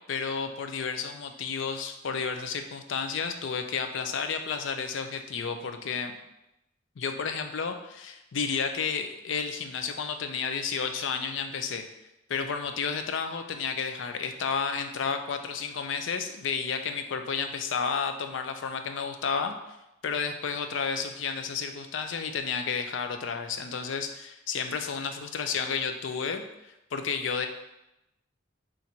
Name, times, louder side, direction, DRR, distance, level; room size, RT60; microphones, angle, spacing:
voice 1, 0.1-6.2 7.0-11.9 12.3-19.8 20.0-27.5, left 5 dB, 75° left, 7 dB, 0.4 m, -31 dB
4.0 x 2.5 x 4.3 m, 0.89 s
head